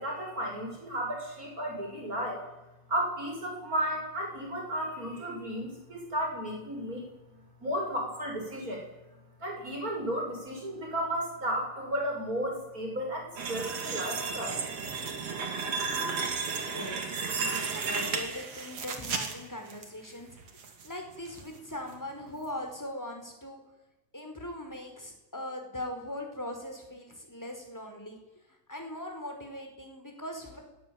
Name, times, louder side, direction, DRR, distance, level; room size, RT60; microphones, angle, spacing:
voice 1, 0.0-2.4 2.9-7.1 7.6-8.8 9.4-14.6, equal, 25° right, 1 dB, 7.7 m, -33 dB
stone sliding, 13.4-19.8 20.3-20.9 21.3-21.4 21.9-22.0, right 5 dB, 50° right, 3.6 m, -33 dB
voice 2, 16.6-17.2 17.7-23.6 24.1-28.2 28.7-30.6, left 1 dB, 5° left, 3 dB, 4.8 m, -40 dB
28.0 x 18.5 x 9.6 m, 1.0 s
omnidirectional pair, 3.8 m